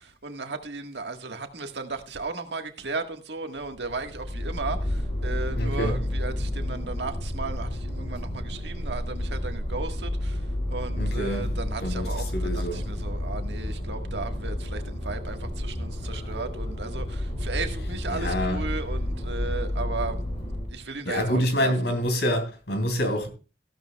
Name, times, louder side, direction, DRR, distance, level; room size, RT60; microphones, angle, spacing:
voice 1, 0.0-10.4 10.7-20.2 20.7-21.9, right 3 dB, 80° right, 1.6 m, -35 dB
sound 1, 3.6-20.8, left 1 dB, 35° left, 6.1 m, -31 dB
voice 2, 5.6-6.0 11.0-11.4 11.8-12.8 18.1-18.6 21.0-23.3, equal, 75° left, 2.9 m, -27 dB
15.0 x 12.0 x 2.3 m
head